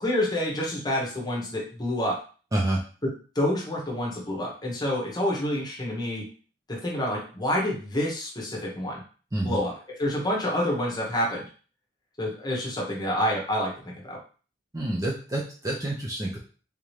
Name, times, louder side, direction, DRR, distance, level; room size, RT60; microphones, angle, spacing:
voice 1, 0.0-2.2 3.0-6.3 6.7-9.0 9.4-9.7 10.0-11.5 12.2-14.2, left 1 dB, 20° left, -3 dB, 1.0 m, -28 dB
voice 2, 2.5-2.8 9.3-9.6 14.7-16.4, right 1 dB, 20° right, -2 dB, 0.5 m, -28 dB
3.5 x 2.8 x 3.2 m, 0.39 s
head